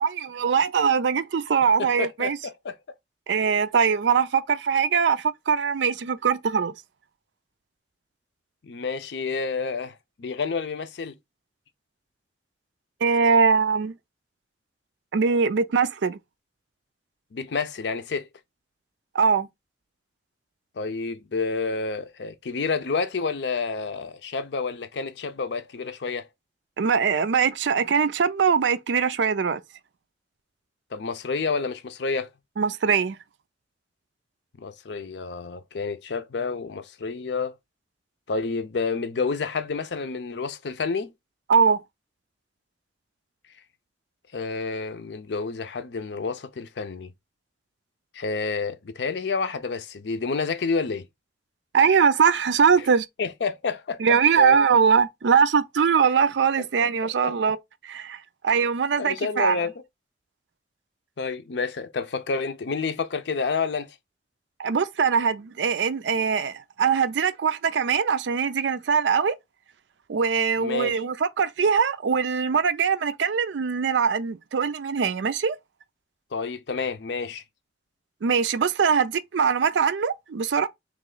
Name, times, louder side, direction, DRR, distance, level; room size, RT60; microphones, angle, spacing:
voice 1, 0.0-2.4 3.3-6.7 13.0-13.9 15.1-16.2 19.1-19.5 26.8-29.6 32.6-33.2 41.5-41.8 51.7-53.1 54.0-57.6 57.8-59.7 64.6-69.3 70.1-75.6 78.2-80.7, right 6 dB, 80° right, 0.4 m, -22 dB
voice 2, 2.0-2.7 8.6-11.2 17.3-18.3 20.8-26.3 30.9-32.3 34.6-37.5 38.3-41.1 44.3-47.1 48.1-51.1 53.2-54.0 54.4-54.6 57.0-57.3 59.0-59.7 61.2-63.9 70.6-70.9 76.3-77.4, left 4 dB, 70° left, 0.5 m, -29 dB
3.2 x 3.0 x 3.7 m
head